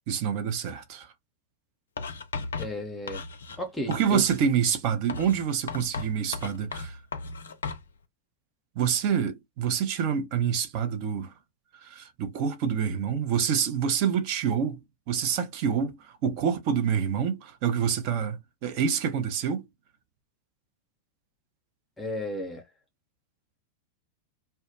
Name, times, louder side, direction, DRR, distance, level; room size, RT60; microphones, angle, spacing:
voice 1, 0.1-1.1 3.9-7.0 8.8-11.3 11.8-14.8 15.1-19.6, right 7 dB, 45° right, 0.6 m, -27 dB
Writing, 2.0-3.6 3.9-4.5 5.1-7.9, left 4 dB, 70° left, 0.4 m, -36 dB
voice 2, 2.6-3.2 3.6-4.3 22.0-22.6, left 1 dB, 10° left, 0.6 m, -33 dB
2.2 x 2.1 x 2.7 m
figure-of-eight pair, 90°, 0 cm